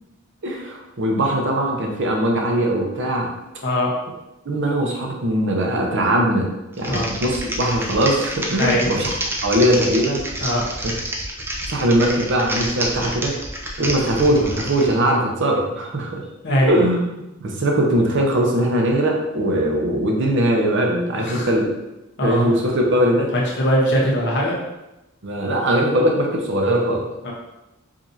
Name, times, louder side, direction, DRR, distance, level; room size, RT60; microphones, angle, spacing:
voice 1, 0.4-3.3 4.4-6.5 6.8-9.1 9.4-10.2 10.8-10.9 11.7-13.3 13.8-16.2 16.6-17.0 17.4-21.7 22.2-23.3 25.2-27.0, right 1 dB, 60° right, 1 dB, 0.8 m, -20 dB
Typing, 6.7-14.9, right 1 dB, 10° right, 0.4 m, -28 dB
voice 2, 22.2-22.5 23.3-24.6 27.2-27.3, equal, 55° left, -2 dB, 1.0 m, -20 dB
5.0 x 2.7 x 2.7 m, 0.95 s
head